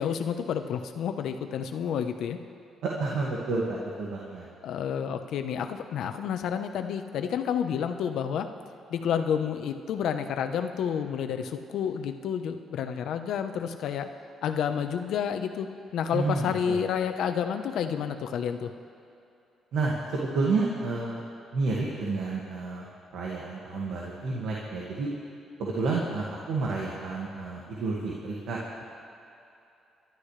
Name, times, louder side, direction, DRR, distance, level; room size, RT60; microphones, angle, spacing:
voice 1, 0.0-2.4 4.6-8.5 8.9-14.1 14.4-15.7 15.9-18.7, left 8 dB, 75° left, 7 dB, 0.9 m, -30 dB
voice 2, 2.8-4.5 16.1-16.8 19.7-21.2 21.5-22.8 23.1-25.1 25.6-28.8, right 3 dB, 75° right, -4 dB, 2.0 m, -30 dB
28.5 x 12.0 x 3.3 m, 2.8 s
cardioid pair, 90°, 0 cm